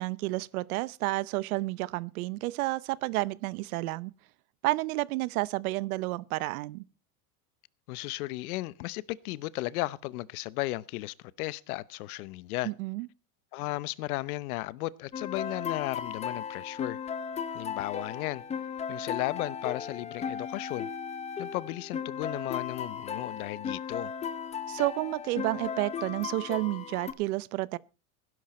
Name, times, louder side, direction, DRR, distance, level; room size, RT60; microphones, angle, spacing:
voice 1, 0.0-4.1 4.6-6.8 12.6-13.1 24.7-27.8, right 20 dB, 75° right, 0.8 m, -31 dB
voice 2, 7.9-12.7 13.5-17.0 17.5-18.4 18.9-20.9 21.4-24.1, left 19 dB, 75° left, 0.9 m, -35 dB
sound 1, 15.1-27.1, left 7 dB, 15° left, 0.7 m, -36 dB
17.0 x 11.0 x 4.3 m
supercardioid pair, 155°, 44 cm